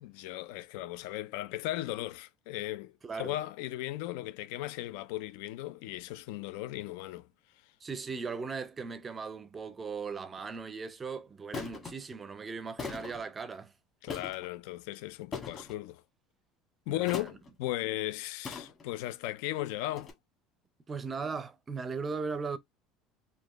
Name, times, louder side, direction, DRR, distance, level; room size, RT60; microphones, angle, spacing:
voice 1, 0.0-7.3 14.0-16.0 16.9-20.1, left 15 dB, 75° left, 0.4 m, -36 dB
voice 2, 3.0-3.4 7.8-13.7 16.9-17.3 20.9-22.6, right 5 dB, 20° right, 0.5 m, -38 dB
sound 1, 10.4-10.6 11.5-11.9 12.8-13.2 14.1-14.5 15.3-15.8 17.1-17.5 18.4-19.0 20.0-20.1, left 4 dB, 25° left, 1.3 m, -40 dB
4.2 x 2.7 x 2.9 m
cardioid pair, 160°, 0 cm